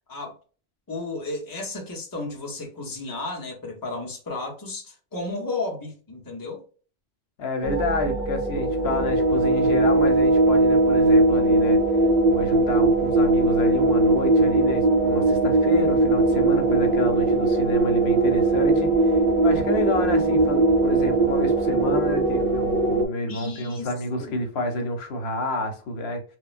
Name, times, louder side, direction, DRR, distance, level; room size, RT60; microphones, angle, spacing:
voice 1, 0.9-6.6 23.3-24.3, left 2 dB, 25° left, 0.7 m, -33 dB
voice 2, 7.4-11.8 12.2-26.2, left 1 dB, 80° left, 0.9 m, -29 dB
sound 1, 7.6-23.1, right 2 dB, 65° right, 0.8 m, -20 dB
3.0 x 2.2 x 2.4 m
omnidirectional pair, 1.0 m